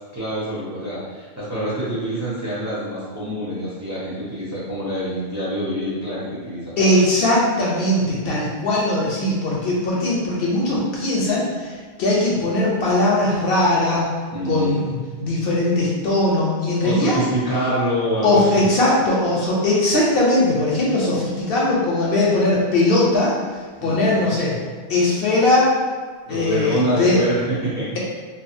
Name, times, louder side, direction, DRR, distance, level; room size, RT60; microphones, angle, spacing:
voice 1, 0.1-6.9 14.3-14.8 16.8-18.6 23.8-24.1 26.3-27.9, equal, 20° right, -9 dB, 0.5 m, -25 dB
voice 2, 6.8-11.7 12.0-14.1 14.4-17.2 18.2-23.3 23.8-24.6 24.9-25.7 26.3-27.2, left 1 dB, 65° left, -4 dB, 0.7 m, -19 dB
2.8 x 2.2 x 2.5 m, 1.6 s
omnidirectional pair, 1.1 m